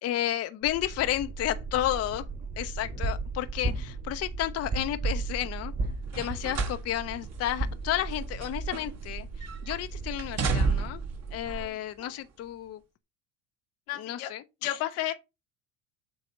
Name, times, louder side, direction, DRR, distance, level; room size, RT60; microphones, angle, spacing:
voice 1, 0.0-2.3 2.6-5.7 6.2-9.3 9.6-11.0 11.3-12.8 14.0-14.8, left 13 dB, 35° left, 0.6 m, -32 dB
sound 1, 0.6-11.7, right 3 dB, 20° right, 0.7 m, -35 dB
sound 2, 6.1-6.8 7.2-7.4 8.1-9.1 9.4-9.8 10.2-11.1 12.0-12.1, right 4 dB, 35° right, 1.3 m, -30 dB
voice 2, 11.5-11.8 13.9-14.3 14.6-15.1, left 14 dB, 75° left, 1.3 m, -34 dB
7.7 x 2.7 x 5.2 m
supercardioid pair, 95°, 43 cm